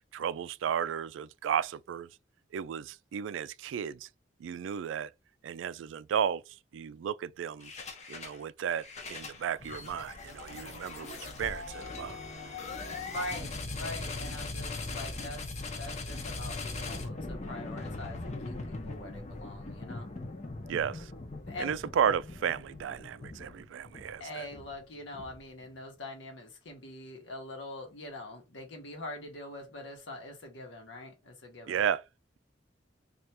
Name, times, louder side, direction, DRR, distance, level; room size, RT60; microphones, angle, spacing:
voice 1, 0.1-2.1 2.5-4.1 4.4-5.1 5.4-7.7 8.1-12.2 20.7-21.1 21.6-24.4 31.7-32.0, right 8 dB, 85° right, 0.3 m, -33 dB
sound 1, 7.6-8.4 8.7-25.7, left 3 dB, 40° left, 0.7 m, -40 dB
voice 2, 13.0-20.1 21.4-21.8 24.2-31.8, left 1 dB, 75° left, 1.0 m, -43 dB
3.3 x 2.4 x 4.2 m
head